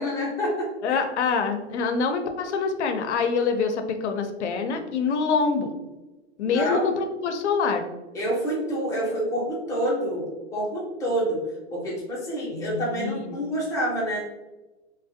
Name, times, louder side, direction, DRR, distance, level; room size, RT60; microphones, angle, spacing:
voice 1, 0.0-1.0 6.4-6.9 8.1-11.4 11.7-14.2, equal, 10° left, -4 dB, 0.5 m, -28 dB
voice 2, 0.8-5.7 6.4-7.8 12.5-13.4, left 5 dB, 85° left, 6 dB, 0.5 m, -25 dB
2.4 x 2.1 x 2.6 m, 1.1 s
hypercardioid pair, 140°, 34 cm